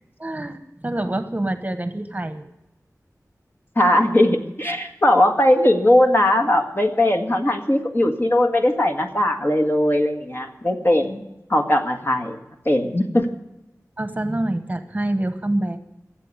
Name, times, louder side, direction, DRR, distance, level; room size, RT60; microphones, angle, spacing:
voice 1, 0.2-0.6 0.8-2.4 14.0-15.8, right 1 dB, 25° right, 9 dB, 1.0 m, -26 dB
voice 2, 3.8-11.2 11.5-12.4 12.7-13.3, left 1 dB, 35° left, 4 dB, 1.7 m, -19 dB
15.5 x 7.6 x 9.6 m, 0.91 s
wide cardioid pair, 55°, 6 cm